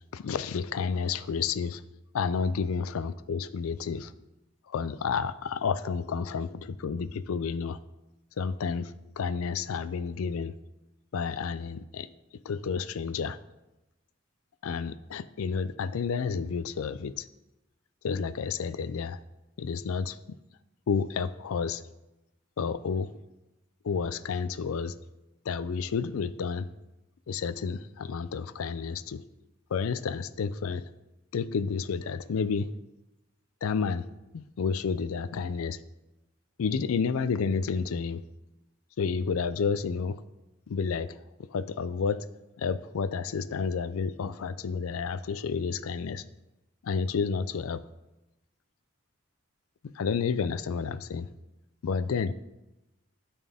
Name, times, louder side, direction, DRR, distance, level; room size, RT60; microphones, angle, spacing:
voice 1, 0.1-1.8 2.1-4.1 4.7-7.8 8.4-10.5 11.1-12.1 12.4-13.4 14.6-17.3 18.0-19.2 19.6-20.2 20.9-21.8 22.6-23.1 23.8-24.9 25.5-26.7 27.3-29.2 29.7-30.8 31.3-32.7 33.6-34.1 34.3-35.8 36.6-38.2 39.0-40.2 40.7-41.2 41.5-42.2 42.6-46.2 46.8-47.8 50.0-51.3 51.8-52.3, left 5 dB, 85° left, 14 dB, 0.4 m, -30 dB
12.5 x 4.3 x 3.5 m, 0.98 s
head